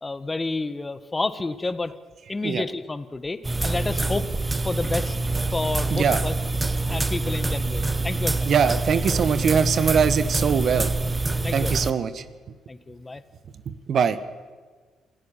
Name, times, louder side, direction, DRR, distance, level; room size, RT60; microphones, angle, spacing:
voice 1, 0.0-1.9 2.3-4.3 4.6-5.2 5.5-6.4 6.9-8.5 11.4-11.9 12.7-13.2, left 3 dB, 25° left, 13 dB, 1.5 m, -30 dB
sound 1, 3.4-11.9, right 3 dB, 20° right, 1.3 m, -26 dB
voice 2, 8.5-10.9 11.5-12.2 13.9-14.2, right 7 dB, 60° right, 13 dB, 1.3 m, -22 dB
27.0 x 15.0 x 7.4 m, 1.4 s
hypercardioid pair, 50°, 0 cm